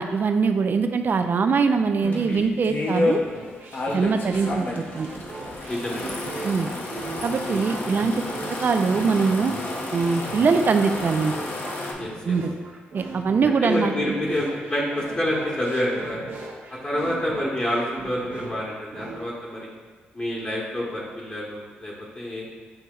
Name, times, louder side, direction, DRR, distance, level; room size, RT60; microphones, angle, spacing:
voice 1, 0.0-3.2 3.9-5.1 6.4-6.7 7.2-8.1 8.6-9.5 9.9-11.4 12.3-12.6 12.9-14.1, right 5 dB, 50° right, 8 dB, 0.3 m, -22 dB
sound 1, 2.0-3.2 3.7-11.9, left 2 dB, 45° left, 0.8 m, -30 dB
sound 2, 3.2-19.2, right 3 dB, 65° right, 0.8 m, -39 dB
voice 2, 5.7-6.0 7.5-7.7 12.0-12.4 13.4-16.2 16.7-19.7 20.1-22.4, left 1 dB, 30° left, -6 dB, 1.0 m, -28 dB
7.6 x 2.8 x 2.4 m, 1.4 s
supercardioid pair, 65°, 4 cm